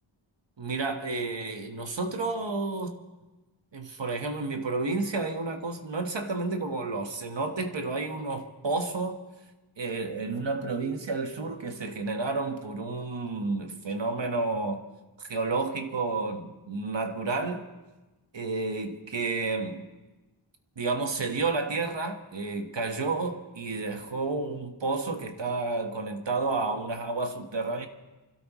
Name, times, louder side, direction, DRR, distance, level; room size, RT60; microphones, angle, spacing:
voice 1, 0.6-3.0 3.7-9.2 9.8-14.9 15.2-17.7 18.3-19.9 20.8-27.9, right 3 dB, 60° right, 1.4 m, -31 dB
29.0 x 13.0 x 3.1 m
wide cardioid pair, 75°, 49 cm